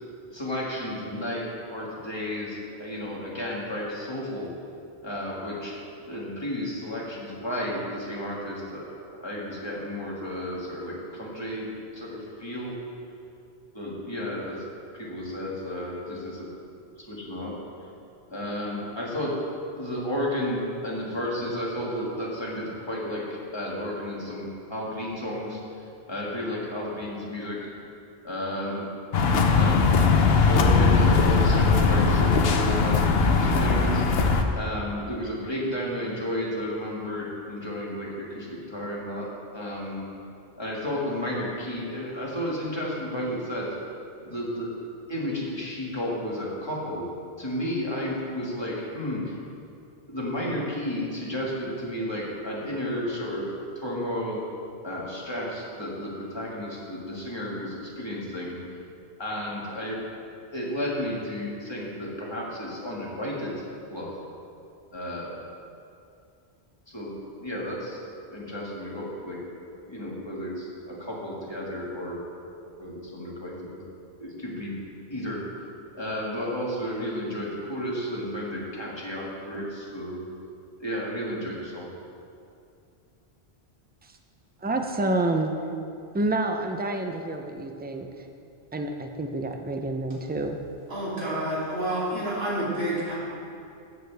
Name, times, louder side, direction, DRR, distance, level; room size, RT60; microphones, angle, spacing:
voice 1, 0.3-4.5 5.0-5.7 6.1-12.7 13.7-14.6 14.9-16.4 17.0-17.5 18.3-19.4 19.8-27.6 28.2-28.8 29.5-29.9 30.4-34.0 34.5-39.3 39.5-40.1 40.6-43.7 44.2-44.7 45.1-47.1 47.4-49.4 50.1-53.4 53.8-54.4 54.8-58.6 59.2-60.0 60.5-63.5 63.9-64.1 64.9-65.3 66.9-69.4 69.9-72.2 72.8-73.8 74.2-74.7 75.1-75.4 75.9-80.2 80.8-81.9, left 1 dB, 25° left, -5 dB, 1.9 m, -32 dB
sound 1, 29.1-34.4, left 4 dB, 65° left, 0.9 m, -20 dB
voice 2, 84.6-85.5 86.1-88.1 88.7-90.6, right 2 dB, 15° right, 4 dB, 0.4 m, -28 dB
voice 3, 90.9-93.1, right 1 dB, 70° right, -8 dB, 2.8 m, -29 dB
13.0 x 8.3 x 3.4 m, 2.5 s
omnidirectional pair, 1.1 m